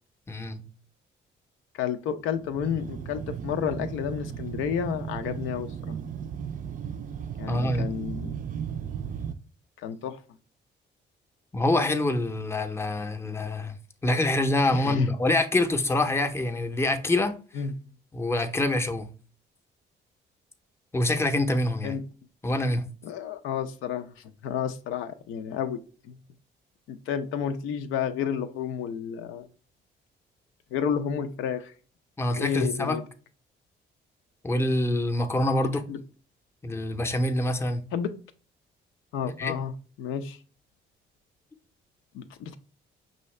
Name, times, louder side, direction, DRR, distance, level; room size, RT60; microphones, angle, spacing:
voice 1, 0.3-0.6 7.5-7.9 11.5-13.7 14.0-17.3 18.1-19.1 20.9-22.0 22.4-22.8 32.2-33.0 34.4-35.8 36.6-37.8 39.4-39.5, left 1 dB, 15° left, 0.6 m, -25 dB
voice 2, 1.7-5.9 7.4-8.4 9.8-10.2 14.7-15.1 17.5-17.7 21.8-22.0 23.0-25.8 26.0-26.2 26.9-29.5 30.7-31.7 32.4-33.0 35.7-36.0 37.9-38.1 39.1-39.7 40.0-40.4 42.1-42.6, left 7 dB, 90° left, 0.5 m, -31 dB
sound 1, 2.3-9.3, right 8 dB, 45° right, 0.4 m, -36 dB
5.5 x 2.7 x 3.1 m
cardioid pair, 90°, 20 cm